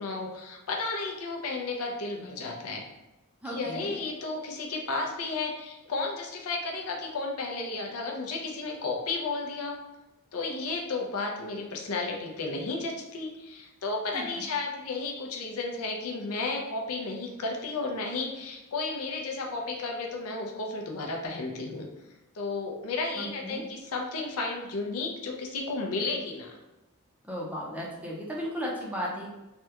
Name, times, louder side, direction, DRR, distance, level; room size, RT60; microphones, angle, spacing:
voice 1, 0.0-2.8 3.5-9.8 10.3-21.9 22.3-26.5, left 3 dB, 70° left, 1 dB, 0.6 m, -33 dB
voice 2, 3.4-4.0 10.5-10.6 14.1-14.4 23.2-23.6 27.2-29.3, equal, 5° right, -3 dB, 0.5 m, -35 dB
3.4 x 2.2 x 2.8 m, 1.0 s
head